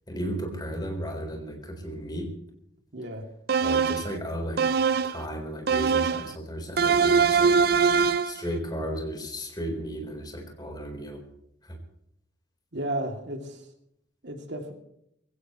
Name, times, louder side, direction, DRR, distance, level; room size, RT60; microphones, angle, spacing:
voice 1, 0.1-2.3 3.6-4.7 5.0-7.6 8.2-11.2 11.6-11.8, equal, 25° left, 2 dB, 4.1 m, -34 dB
voice 2, 2.9-3.3 12.7-13.6 14.2-14.7, right 1 dB, 75° right, 3 dB, 2.7 m, -33 dB
sound 1, 3.5-4.1 4.6-5.2 5.7-6.3 6.8-8.4, right 5 dB, 60° right, 0.5 m, -22 dB
23.0 x 16.5 x 3.2 m, 0.74 s
head